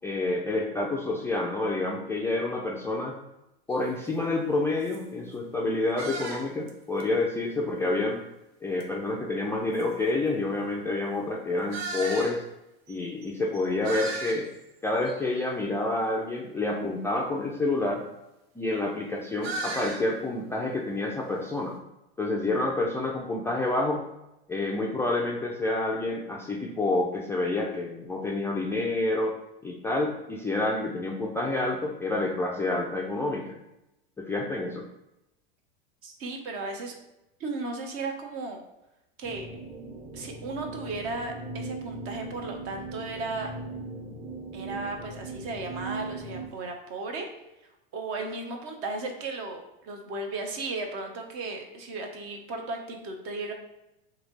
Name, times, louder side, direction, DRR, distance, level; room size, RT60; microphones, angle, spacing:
voice 1, 0.0-3.2 3.7-8.2 8.6-12.4 12.9-14.5 14.8-18.0 18.6-21.8 22.2-24.0 24.5-29.3 29.6-33.6 34.2-34.9, left 2 dB, 10° left, -2 dB, 0.3 m, -28 dB
sound 1, 3.7-3.8 4.4-4.5 4.8-5.0 6.0-6.7 7.0-7.1 8.8-8.9 9.7-9.8 11.7-12.4 12.9-13.0 13.2-13.3 13.5-14.6 15.0-15.5 19.4-20.0, right 3 dB, 80° right, 0.8 m, -35 dB
voice 2, 36.0-37.0 37.4-38.6 39.2-39.5 40.1-43.5 44.5-47.3 47.9-53.5, right 3 dB, 50° right, 3 dB, 0.9 m, -35 dB
sound 2, 39.2-46.5, right 2 dB, 15° right, 0.8 m, -39 dB
3.2 x 2.8 x 3.9 m, 0.91 s
hypercardioid pair, 105°, 30 cm